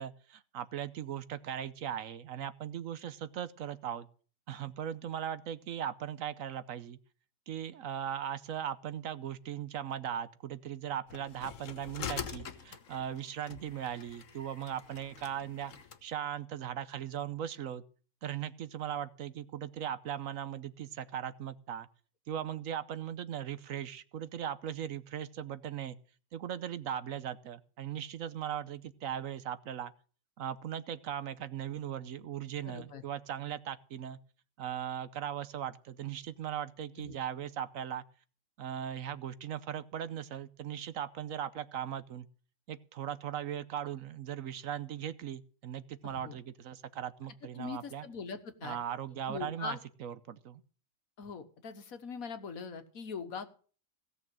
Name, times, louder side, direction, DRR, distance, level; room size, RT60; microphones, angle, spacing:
voice 1, 0.0-4.1 4.5-7.0 7.5-15.7 16.0-17.8 18.2-21.9 22.3-26.0 26.3-29.9 30.4-34.2 34.6-38.0 38.6-42.3 42.7-48.0 48.6-50.6, right 9 dB, 75° right, 1.2 m, -38 dB
sound 1, 11.1-16.0, left 7 dB, 70° left, 1.4 m, -44 dB
voice 2, 32.6-33.0 37.0-37.2 46.0-46.4 47.6-48.8 49.3-49.8 51.2-53.5, left 5 dB, 85° left, 1.8 m, -42 dB
17.0 x 6.6 x 7.6 m
omnidirectional pair, 1.4 m